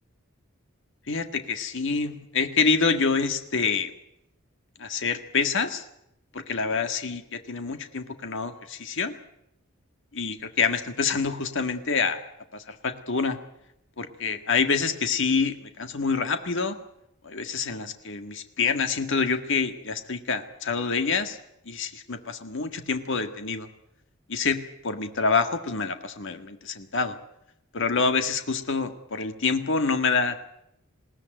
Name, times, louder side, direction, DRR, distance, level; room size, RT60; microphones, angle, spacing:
voice 1, 1.1-3.9 4.8-5.8 6.3-9.1 10.1-12.2 12.5-13.4 14.0-16.8 17.2-21.4 21.7-23.7 24.3-27.2 27.7-30.4, left 5 dB, 65° left, 8 dB, 1.8 m, -27 dB
21.0 x 17.5 x 9.0 m, 0.79 s
head